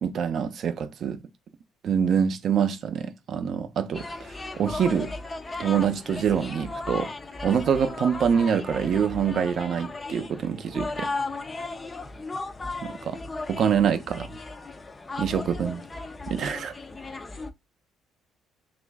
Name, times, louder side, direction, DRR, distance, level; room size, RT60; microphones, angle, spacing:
voice 1, 0.0-1.2 1.8-4.1 4.5-5.1 5.6-7.1 7.4-11.1 12.8-13.2 13.5-14.3 15.2-15.8 16.3-16.7, right 7 dB, 50° right, 0.5 m, -25 dB
sound 1, 3.9-17.5, left 3 dB, 20° left, 0.3 m, -36 dB
3.0 x 2.4 x 3.4 m
cardioid pair, 140°, 0 cm